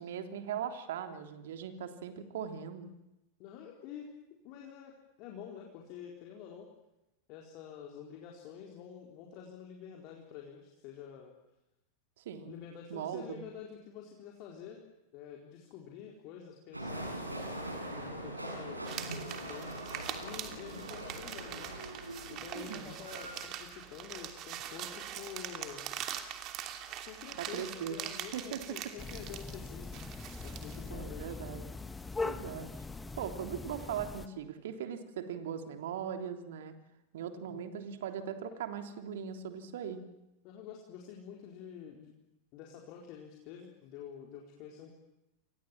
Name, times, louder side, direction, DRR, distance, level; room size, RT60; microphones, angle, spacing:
voice 1, 0.0-2.9 12.2-12.6 12.9-13.4 22.5-22.9 27.4-28.0 28.3-28.6 30.9-31.7 32.2-32.7 33.2-36.8 37.1-40.0, right 8 dB, 55° right, 6 dB, 3.4 m, -39 dB
voice 2, 3.4-4.1 4.4-6.7 7.3-11.3 12.5-14.8 15.1-19.8 20.2-21.7 22.3-25.9 27.0-30.0 30.4-31.3 37.3-37.6 40.4-42.1 42.5-44.9, left 8 dB, 40° left, 0 dB, 4.2 m, -48 dB
sound 1, 16.7-23.5, right 1 dB, 85° right, 5.7 m, -42 dB
sound 2, 18.8-30.9, right 10 dB, 35° right, 3.0 m, -43 dB
sound 3, 29.0-34.3, left 3 dB, 10° left, 1.6 m, -41 dB
30.0 x 25.0 x 7.5 m, 0.94 s
figure-of-eight pair, 90°, 0 cm